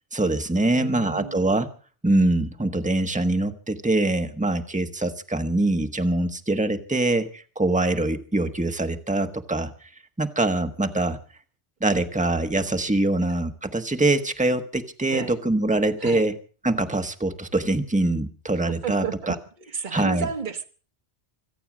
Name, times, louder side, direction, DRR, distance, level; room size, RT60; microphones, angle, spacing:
voice 1, 0.1-1.7 2.0-9.9 10.2-11.2 11.8-16.4 16.6-19.3 19.9-20.3, right 2 dB, 5° right, 1.2 m, -24 dB
voice 2, 0.7-1.5 15.1-15.3 16.0-16.3 18.8-19.3 19.7-20.6, right 6 dB, 45° right, 1.5 m, -32 dB
25.5 x 8.8 x 6.1 m
omnidirectional pair, 1.1 m